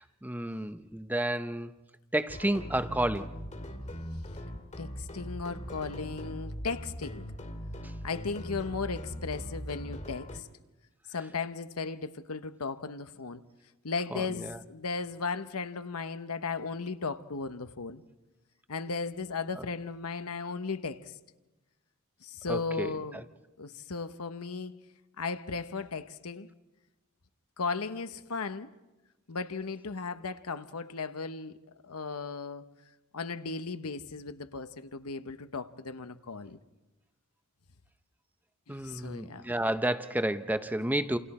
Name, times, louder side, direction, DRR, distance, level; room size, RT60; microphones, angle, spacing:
voice 1, 0.0-1.7 2.1-3.3 14.1-14.6 19.6-19.7 22.5-23.0 38.7-41.2, right 1 dB, 10° right, 0.7 m, -31 dB
sound 1, 2.3-10.4, equal, 35° left, 2.3 m, -40 dB
voice 2, 4.8-7.3 8.0-10.5 11.1-13.4 13.8-18.0 18.7-21.1 22.2-23.2 23.6-24.7 25.2-26.5 27.6-28.7 29.3-31.6 31.8-32.7 33.1-36.6 38.7-39.5, left 4 dB, 80° left, 1.0 m, -36 dB
29.5 x 28.0 x 4.3 m
head